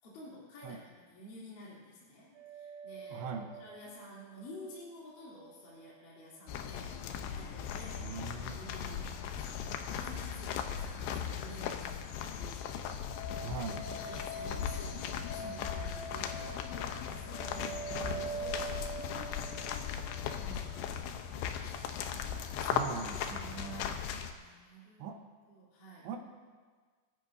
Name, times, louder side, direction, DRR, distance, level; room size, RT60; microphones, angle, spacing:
voice 1, 0.0-12.8 13.5-16.6 16.9-21.7 23.5-24.0 24.3-25.1 25.5-26.1, equal, 50° left, -7 dB, 4.9 m, -52 dB
sound 1, 2.4-5.5 5.8-5.9 13.1-21.0, right 2 dB, 65° right, 4.5 m, -45 dB
voice 2, 3.1-3.5 7.9-8.6 13.4-13.8 17.5-18.2 22.6-24.1 25.0-25.2 26.0-26.2, right 5 dB, 85° right, 4 dB, 3.4 m, -42 dB
sound 2, 6.5-24.3, left 8 dB, 80° left, 3.0 m, -38 dB
27.5 x 14.5 x 2.7 m, 1.5 s
omnidirectional pair, 5.0 m